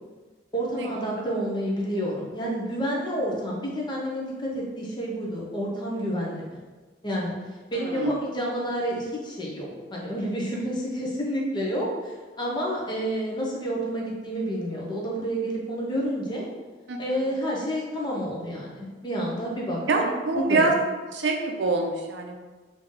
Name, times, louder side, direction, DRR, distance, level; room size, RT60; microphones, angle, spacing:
voice 1, 0.5-6.5 7.0-7.3 7.7-16.4 17.0-20.8, equal, 25° left, -3 dB, 0.7 m, -29 dB
voice 2, 7.8-8.2 16.9-17.0 19.9-20.7 21.1-22.4, right 3 dB, 70° right, 2 dB, 0.5 m, -25 dB
3.3 x 2.7 x 3.6 m, 1.3 s
head